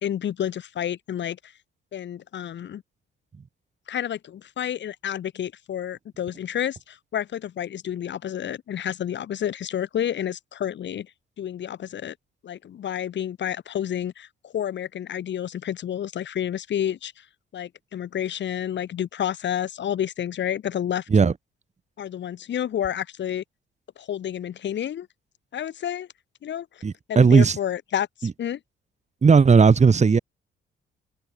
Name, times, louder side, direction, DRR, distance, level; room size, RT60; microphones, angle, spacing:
voice 1, 0.0-1.4 1.9-2.8 3.9-11.1 11.4-12.1 12.4-14.3 14.5-17.1 17.5-21.0 22.0-23.4 24.0-25.1 25.5-26.1 26.4-26.7 27.1-28.6, left 10 dB, 65° left, 4.8 m, -30 dB
voice 2, 26.8-27.6 28.2-28.3 29.2-30.2, right 5 dB, 35° right, 3.3 m, -16 dB
cardioid pair, 90°, 20 cm